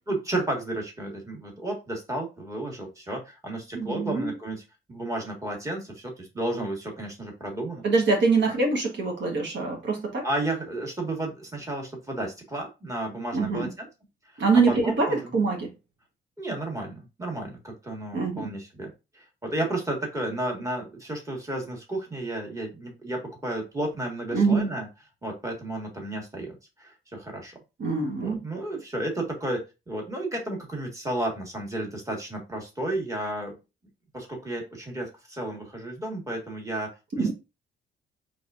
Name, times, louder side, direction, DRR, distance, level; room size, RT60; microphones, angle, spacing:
voice 1, 0.1-4.6 4.9-7.8 8.4-8.5 10.2-13.9 14.3-15.3 16.4-24.9 25.2-27.6 28.2-29.6 29.9-33.5 34.1-37.3, right 1 dB, 15° right, 1.5 m, -32 dB
voice 2, 3.7-4.3 7.8-10.2 13.3-13.7 14.4-15.7 18.1-18.5 24.3-24.7 27.8-28.4 37.2-37.3, right 4 dB, 65° right, 1.3 m, -24 dB
4.1 x 3.4 x 2.5 m
cardioid pair, 90°, 20 cm